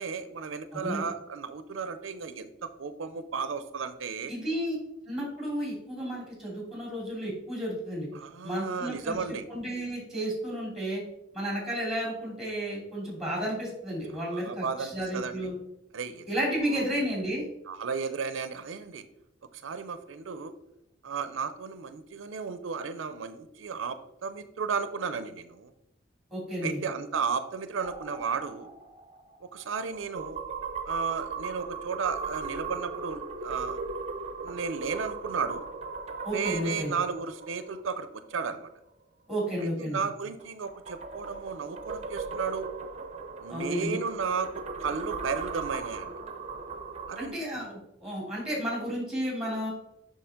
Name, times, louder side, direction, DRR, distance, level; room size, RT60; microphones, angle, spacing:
voice 1, 0.0-4.3 8.1-9.5 14.3-15.5 15.9-16.3 16.6-16.9 17.7-19.0 19.5-20.5 21.0-25.7 26.6-28.7 29.4-30.4 30.9-33.8 34.4-35.7 36.3-38.7 39.6-42.7 43.4-46.1 47.1-47.4, right 5 dB, 85° right, 11 dB, 0.5 m, -34 dB
voice 2, 0.7-1.1 4.3-4.8 5.0-8.1 8.4-9.2 9.5-11.0 11.3-15.5 16.3-17.5 26.3-26.8 36.2-36.9 39.3-40.0 43.5-44.0 47.2-49.7, equal, ahead, -3 dB, 2.9 m, -32 dB
sound 1, 27.8-38.4 40.4-47.3, right 4 dB, 35° right, 0.7 m, -38 dB
7.0 x 5.7 x 3.6 m, 0.85 s
head